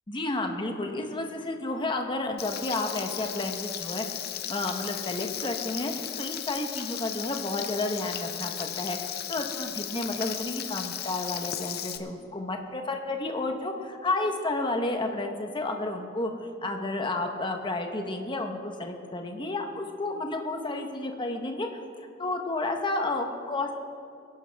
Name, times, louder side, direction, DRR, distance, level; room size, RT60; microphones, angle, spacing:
voice 1, 0.1-4.0 4.5-16.3 16.6-21.8 22.2-23.7, left 2 dB, 25° left, 4 dB, 1.0 m, -31 dB
Frying (food), 2.4-12.0, left 11 dB, 50° left, 0.7 m, -36 dB
21.5 x 11.5 x 3.5 m, 2.5 s
head